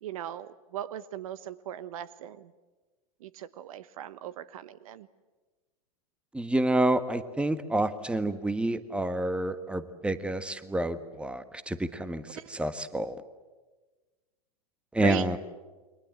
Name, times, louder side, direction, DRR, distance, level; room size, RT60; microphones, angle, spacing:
voice 1, 0.0-2.5 3.2-5.1 12.4-12.7 15.0-15.4, right 11 dB, 65° right, 17 dB, 1.1 m, -38 dB
voice 2, 6.3-13.2 14.9-15.4, right 1 dB, 5° right, 13 dB, 1.5 m, -28 dB
29.5 x 23.0 x 7.7 m, 1.3 s
hypercardioid pair, 95°, 19 cm